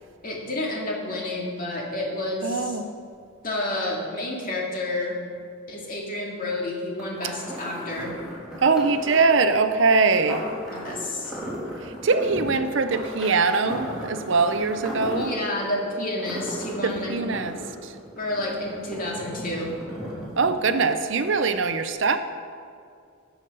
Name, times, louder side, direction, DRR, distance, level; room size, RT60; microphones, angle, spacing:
voice 1, 0.2-2.8 3.4-5.2 5.7-8.1 10.7-11.4 15.1-17.4 18.2-19.8, left 1 dB, 40° left, -2 dB, 2.1 m, -30 dB
voice 2, 2.4-2.9 7.2-7.3 8.6-10.4 11.8-15.3 16.8-17.9 20.4-22.2, right 4 dB, 60° right, 10 dB, 0.6 m, -22 dB
sound 1, 7.0-20.8 21.1-21.2, equal, 5° right, 2.9 m, -36 dB
13.0 x 7.1 x 5.3 m, 2.3 s
head